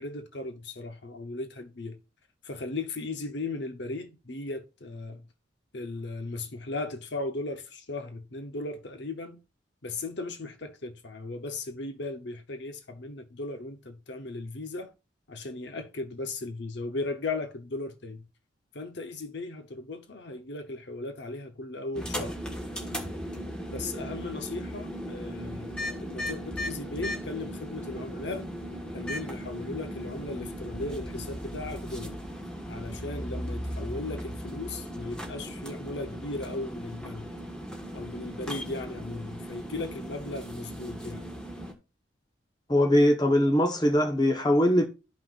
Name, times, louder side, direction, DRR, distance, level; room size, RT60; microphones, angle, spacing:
voice 1, 0.0-2.0 2.4-5.2 5.7-9.4 9.8-14.9 15.3-18.3 18.7-22.4 23.7-25.7 26.0-28.5 28.9-32.2 32.7-37.3 37.9-41.3, left 2 dB, 60° left, 0.9 m, -37 dB
sound 1, 21.9-41.7, equal, 5° left, 1.3 m, -37 dB
voice 2, 42.7-44.9, left 1 dB, 20° left, 1.1 m, -21 dB
12.5 x 5.7 x 2.4 m
head